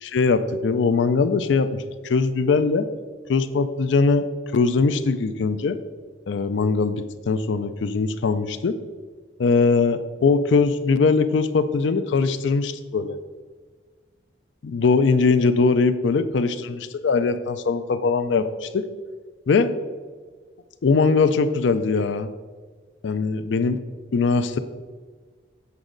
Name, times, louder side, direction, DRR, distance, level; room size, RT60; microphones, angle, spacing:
voice 1, 0.0-2.9 3.3-4.3 4.5-5.8 6.3-8.8 9.4-13.2 14.6-18.9 19.5-19.7 20.8-22.3 23.0-23.8 24.1-24.6, left 4 dB, 85° left, 12 dB, 0.4 m, -21 dB
8.2 x 6.1 x 3.8 m, 1.5 s
head